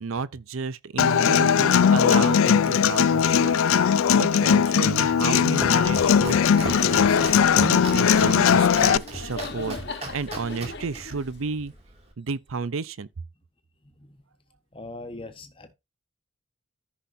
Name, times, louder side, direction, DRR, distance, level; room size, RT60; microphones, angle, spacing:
voice 1, 0.0-7.2 7.5-11.7 12.2-13.1, right 4 dB, 75° right, 0.6 m, -32 dB
Human voice / Acoustic guitar, 1.0-9.0, left 7 dB, 80° left, 0.4 m, -19 dB
Domestic sounds home sounds, 5.2-12.1, right 2 dB, 30° right, 2.3 m, -39 dB
Laughter, 5.9-11.7, left 3 dB, 55° left, 1.2 m, -35 dB
voice 2, 13.8-14.2 14.7-15.7, left 2 dB, 25° left, 1.2 m, -41 dB
14.0 x 5.9 x 2.7 m
head